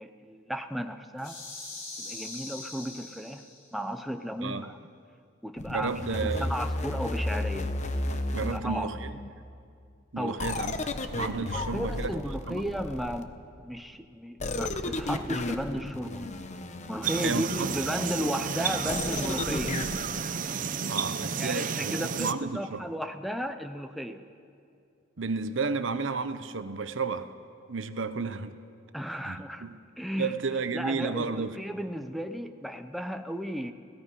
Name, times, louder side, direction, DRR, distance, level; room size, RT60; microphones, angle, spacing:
voice 1, 0.0-1.4 2.0-3.4 3.7-4.8 5.4-7.7 8.4-8.9 10.2-10.4 11.5-13.3 13.6-16.2 16.9-19.8 21.4-24.2 28.9-29.6 30.0-30.3 30.7-33.7, equal, ahead, 6 dB, 0.7 m, -34 dB
sound 1, 1.2-3.7, left 2 dB, 85° left, 6.7 m, -42 dB
sound 2, 5.6-9.3 10.4-13.5 14.4-20.0, left 2 dB, 35° left, 1.0 m, -34 dB
voice 2, 5.7-6.5 8.3-9.1 10.1-10.7 11.1-12.2 12.5-12.7 17.2-17.7 20.9-22.9 25.2-27.3 27.7-28.6 29.2-29.8 30.2-31.6, right 4 dB, 65° right, 11 dB, 0.9 m, -32 dB
sound 3, 17.0-22.3, right 6 dB, 40° right, 0.7 m, -32 dB
28.5 x 17.0 x 5.5 m, 2.5 s
head